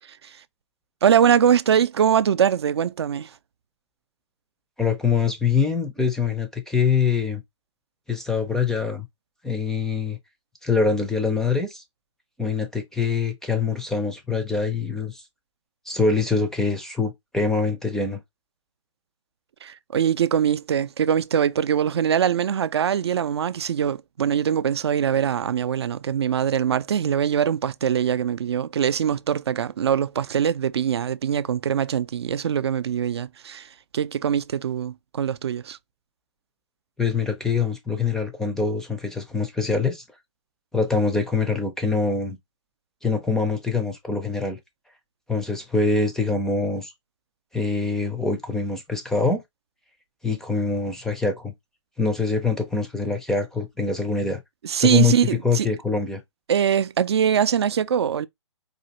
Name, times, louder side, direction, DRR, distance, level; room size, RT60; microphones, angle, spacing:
voice 1, 1.0-3.3 19.6-35.8 54.6-55.7 56.5-58.3, right 8 dB, 60° right, 0.4 m, -22 dB
voice 2, 4.8-7.4 8.1-9.1 9.4-10.2 10.6-11.8 12.4-15.2 15.9-18.2 37.0-40.0 40.7-42.4 43.0-44.6 45.3-46.9 47.5-49.4 50.2-51.5 52.0-54.4 54.8-55.2 55.4-56.2, left 4 dB, 5° left, 0.4 m, -24 dB
4.1 x 2.6 x 2.9 m
figure-of-eight pair, 130°, 16 cm